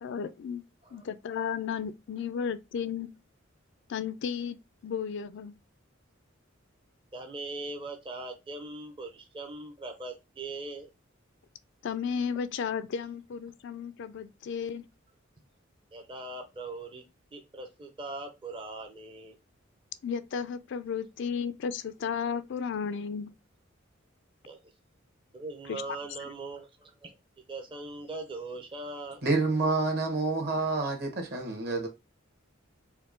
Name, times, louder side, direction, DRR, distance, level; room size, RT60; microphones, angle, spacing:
voice 1, 0.0-0.6 0.9-3.1 3.9-4.6 4.8-5.6 11.8-14.9 20.0-23.3 25.7-25.8, left 6 dB, 60° left, 0.4 m, -33 dB
voice 2, 7.1-10.9 15.9-17.0 17.3-19.4 24.4-24.7 25.3-29.2, right 2 dB, 25° right, 0.6 m, -41 dB
voice 3, 29.2-31.9, right 3 dB, 55° right, 1.3 m, -28 dB
4.4 x 2.1 x 3.7 m
head